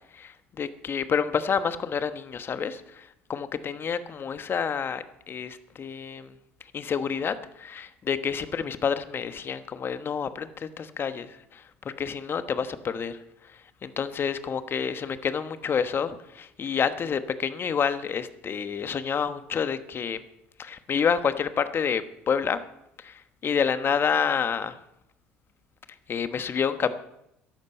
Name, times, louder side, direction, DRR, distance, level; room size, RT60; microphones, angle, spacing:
voice 1, 0.1-6.3 6.7-11.6 12.0-13.2 13.5-20.2 20.6-22.6 23.0-24.7 26.1-27.0, left 6 dB, 35° left, 11 dB, 1.1 m, -28 dB
15.0 x 11.0 x 5.4 m, 0.80 s
hypercardioid pair, 60°, 6 cm